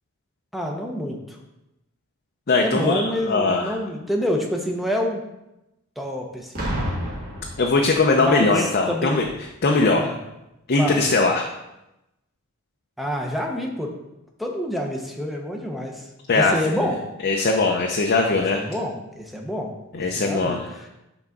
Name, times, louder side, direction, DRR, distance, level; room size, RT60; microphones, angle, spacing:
voice 1, 0.5-1.4 2.6-5.2 6.0-6.7 8.2-9.1 9.9-10.2 10.8-11.1 13.0-13.9 14.4-16.0 16.3-17.0 18.3-20.6, equal, ahead, 1 dB, 0.8 m, -27 dB
voice 2, 2.5-3.8 7.6-9.3 9.6-10.1 10.7-11.5 16.3-16.8 17.2-18.6 19.9-20.6, left 3 dB, 45° left, 1 dB, 0.6 m, -20 dB
Boom, 6.5-8.3 9.2-9.4, equal, 45° right, 1.9 m, -30 dB
5.9 x 3.9 x 5.9 m, 0.91 s
head